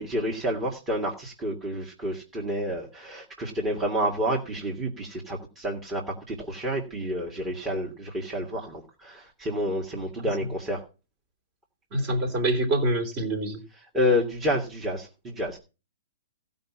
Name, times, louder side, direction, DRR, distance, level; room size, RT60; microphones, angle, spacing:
voice 1, 0.0-10.8 13.9-15.6, equal, 20° right, 2.2 m, -29 dB
voice 2, 11.9-13.6, right 1 dB, 35° right, 3.1 m, -25 dB
15.5 x 5.5 x 7.4 m
hypercardioid pair, 120°, 0 cm